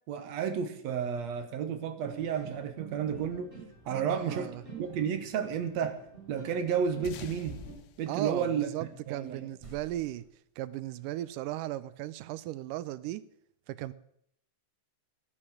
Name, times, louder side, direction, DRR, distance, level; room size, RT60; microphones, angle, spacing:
voice 1, 0.1-3.5 3.9-4.5 4.8-6.0 6.3-7.6 8.0-9.5, right 7 dB, 65° right, 2.1 m, -32 dB
sound 1, 2.0-7.7, right 4 dB, 15° left, 5.2 m, -48 dB
voice 2, 3.9-4.6 8.1-10.2 10.6-13.2 13.7-13.9, right 15 dB, 85° right, 2.2 m, -36 dB
sound 2, 7.0-9.8, left 11 dB, 70° left, 1.8 m, -49 dB
sound 3, 9.2-10.4, right 1 dB, 25° right, 0.6 m, -54 dB
13.0 x 8.9 x 6.4 m
omnidirectional pair, 3.7 m